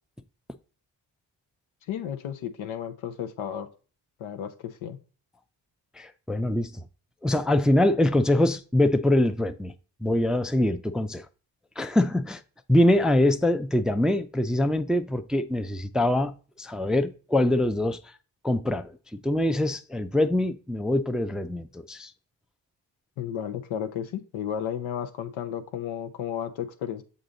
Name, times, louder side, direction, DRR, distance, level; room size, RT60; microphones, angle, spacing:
voice 1, 1.9-3.7 4.2-5.0 23.2-27.0, left 9 dB, 80° left, 0.9 m, -33 dB
voice 2, 6.0-6.8 7.2-9.7 10.0-11.3 11.8-12.4 12.7-18.0 18.4-19.0 19.2-22.1, left 1 dB, ahead, 0.4 m, -24 dB
6.8 x 3.8 x 3.9 m
supercardioid pair, 50°, 47 cm